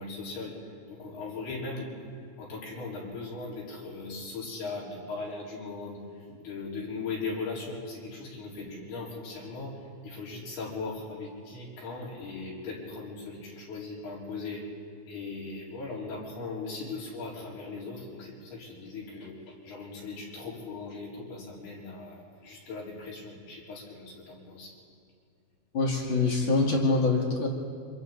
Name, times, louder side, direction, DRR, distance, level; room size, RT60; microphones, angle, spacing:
voice 1, 0.0-1.9 2.4-14.6 15.1-24.7, left 3 dB, 80° left, -5 dB, 6.4 m, -39 dB
voice 2, 25.7-27.5, left 3 dB, 35° left, -1 dB, 2.4 m, -25 dB
28.0 x 26.5 x 4.0 m, 2.2 s
omnidirectional pair, 4.5 m